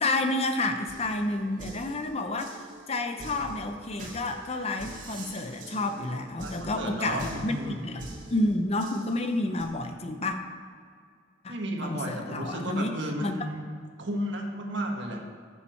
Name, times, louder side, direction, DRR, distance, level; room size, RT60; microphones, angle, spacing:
voice 1, 0.0-10.4 11.4-13.5, left 2 dB, 30° left, 6 dB, 0.7 m, -30 dB
sound 1, 0.9-9.6, right 1 dB, 40° right, 2.3 m, -45 dB
voice 2, 6.4-7.8 11.5-13.6 14.0-15.2, right 1 dB, 65° right, 1 dB, 1.6 m, -33 dB
14.5 x 7.1 x 4.5 m, 2.1 s
head